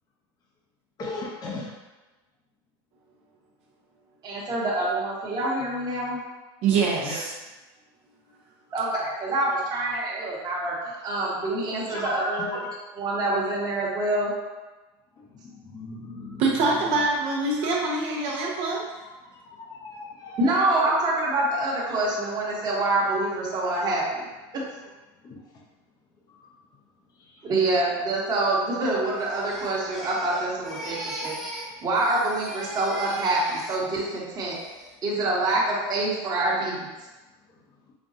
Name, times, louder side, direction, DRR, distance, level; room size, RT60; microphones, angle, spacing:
voice 1, 1.0-1.7 7.0-7.2 11.8-12.3 15.2-16.4 16.7-16.9 18.3-18.4 18.7-20.9 25.2-25.4 26.3-26.5 27.2-27.5 35.1-35.2 37.5-37.6 37.9-38.0, left 3 dB, 30° left, -3 dB, 0.7 m, -38 dB
voice 2, 4.2-6.2 8.7-12.6 13.0-14.3 20.4-24.3 24.5-24.6 27.4-34.6 35.0-36.9, right 2 dB, 30° right, -5 dB, 1.1 m, -26 dB
voice 3, 6.6-7.3 16.4-18.8, right 3 dB, 50° right, -3 dB, 0.7 m, -24 dB
Crying sobbing, 29.2-31.7 31.9-34.1 34.5-34.9, equal, ahead, 1.1 m, -37 dB
5.1 x 2.3 x 2.6 m, 1.2 s
supercardioid pair, 125°, 13 cm